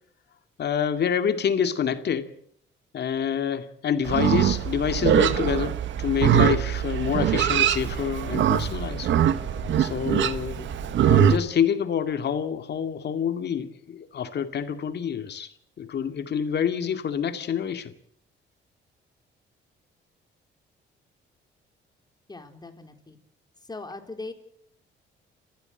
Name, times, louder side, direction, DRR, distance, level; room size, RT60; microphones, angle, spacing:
voice 1, 0.6-2.3 2.9-9.1 9.8-10.7 11.1-15.5 15.8-17.9, left 8 dB, 60° left, 8 dB, 2.3 m, -27 dB
Livestock farm animals working animals, 4.0-11.4, right 10 dB, 70° right, 1.4 m, -23 dB
sound 1, 4.2-11.4, left 6 dB, 40° left, 2.6 m, -44 dB
voice 2, 22.3-23.2 23.6-24.3, left 3 dB, 20° left, 6 dB, 4.1 m, -39 dB
29.0 x 15.0 x 8.0 m, 0.68 s
cardioid pair, 90°, 20 cm